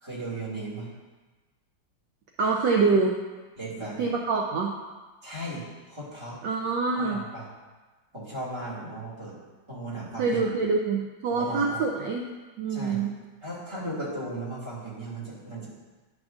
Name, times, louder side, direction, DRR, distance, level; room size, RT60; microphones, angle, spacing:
voice 1, 0.0-0.9 3.6-4.1 5.2-6.4 6.9-7.5 8.1-9.4 9.7-10.6 11.3-11.8 12.7-13.0 13.4-15.7, right 2 dB, 15° right, -7 dB, 1.8 m, -36 dB
voice 2, 2.4-3.2 4.0-4.7 6.4-7.2 10.2-12.3 12.6-13.1, right 4 dB, 70° right, 0 dB, 1.1 m, -25 dB
10.5 x 6.1 x 2.5 m, 1.3 s
omnidirectional pair, 2.4 m